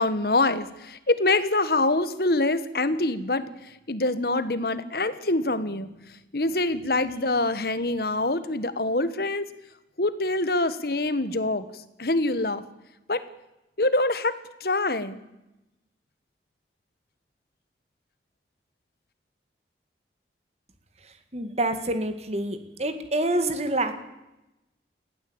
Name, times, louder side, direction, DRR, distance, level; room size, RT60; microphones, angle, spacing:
voice 1, 0.0-5.9 6.3-9.5 10.0-12.6 13.1-13.2 13.8-15.2, left 2 dB, 55° left, 13 dB, 1.4 m, -25 dB
voice 2, 21.3-23.9, right 1 dB, 35° right, 9 dB, 2.1 m, -27 dB
20.5 x 15.5 x 8.8 m, 0.94 s
head